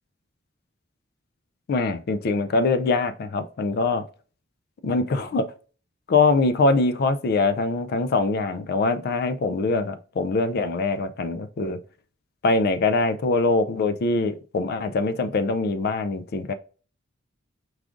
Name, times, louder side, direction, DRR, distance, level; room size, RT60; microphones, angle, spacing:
voice 1, 1.7-4.0 4.8-5.5 6.1-11.8 12.4-16.5, left 3 dB, 50° left, 0.4 m, -23 dB
4.7 x 2.4 x 3.7 m
head